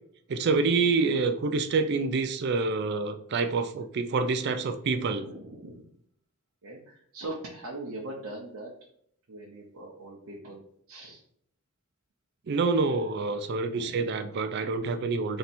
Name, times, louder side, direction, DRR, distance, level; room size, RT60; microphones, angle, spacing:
voice 1, 0.3-5.2 12.5-15.4, right 4 dB, 50° right, 8 dB, 0.4 m, -27 dB
voice 2, 5.2-5.8 6.6-8.7 9.3-10.6 10.9-11.2 13.7-14.1, right 2 dB, 75° right, -3 dB, 0.7 m, -41 dB
3.2 x 2.8 x 4.2 m, 0.67 s
head